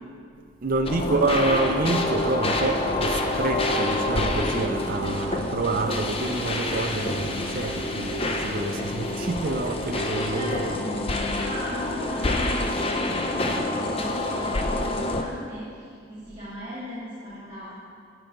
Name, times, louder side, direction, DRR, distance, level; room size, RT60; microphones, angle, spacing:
voice 1, 0.6-10.7, right 3 dB, 45° right, 7 dB, 0.6 m, -27 dB
sound 1, 0.9-15.2, left 2 dB, 30° left, 0.7 m, -27 dB
voice 2, 10.2-17.7, equal, 25° right, -12 dB, 2.5 m, -37 dB
17.5 x 6.0 x 3.9 m, 2.3 s
head